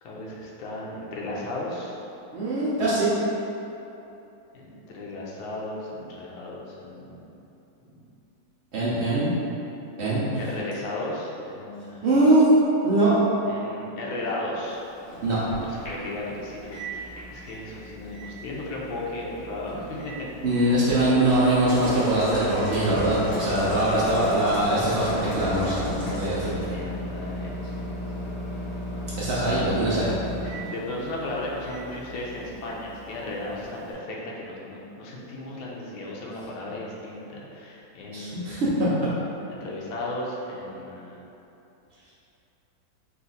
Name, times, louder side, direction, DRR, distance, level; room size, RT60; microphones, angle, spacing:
voice 1, 0.0-1.9 4.5-7.4 7.9-8.0 10.1-12.1 13.5-14.8 15.6-20.1 20.6-20.8 26.1-28.0 29.7-30.0 30.4-38.8 39.5-41.2, left 1 dB, 90° left, -4 dB, 1.5 m, -35 dB
voice 2, 2.3-3.1 8.7-9.3 10.0-10.2 12.0-12.5 12.8-13.2 15.2-15.4 20.4-26.7 29.2-30.1 38.1-38.9, right 1 dB, 75° right, -9 dB, 0.6 m, -22 dB
Microwave oven, 14.6-33.9, equal, 70° left, 1.8 m, -37 dB
sound 1, 20.8-25.9, equal, 25° right, 0.4 m, -37 dB
sound 2, 21.7-26.5, left 1 dB, 50° left, 0.9 m, -35 dB
4.0 x 2.5 x 3.9 m, 2.9 s
omnidirectional pair, 2.1 m